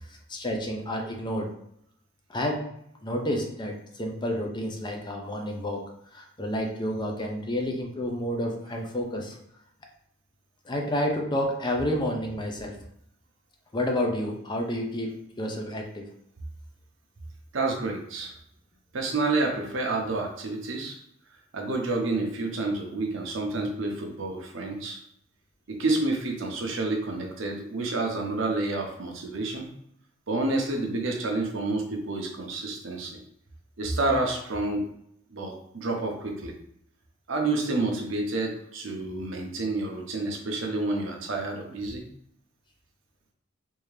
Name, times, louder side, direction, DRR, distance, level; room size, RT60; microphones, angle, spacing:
voice 1, 0.1-1.5 2.3-2.7 3.0-9.4 10.7-12.8 13.7-16.1, left 1 dB, 25° left, 2 dB, 0.5 m, -30 dB
voice 2, 17.5-18.3 18.9-21.0 21.5-25.0 25.7-29.7 30.3-33.2 33.8-34.8 35.3-36.5 37.3-42.0, right 2 dB, 70° right, 2 dB, 0.7 m, -29 dB
3.6 x 2.7 x 3.2 m, 0.72 s
head